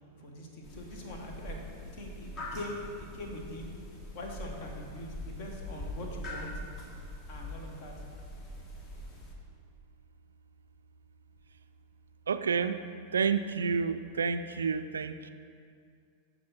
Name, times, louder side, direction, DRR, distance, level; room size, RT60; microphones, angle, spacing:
voice 1, 0.2-1.6 1.9-2.9 3.1-3.7 4.1-6.5 7.3-7.9, left 1 dB, 45° left, 1 dB, 1.5 m, -43 dB
sound 1, 0.6-9.3, left 1 dB, 30° left, 1.3 m, -43 dB
voice 2, 12.3-12.8 13.1-15.3, right 5 dB, 70° right, 11 dB, 0.3 m, -29 dB
13.5 x 4.5 x 4.3 m, 2.3 s
figure-of-eight pair, 90°, 0 cm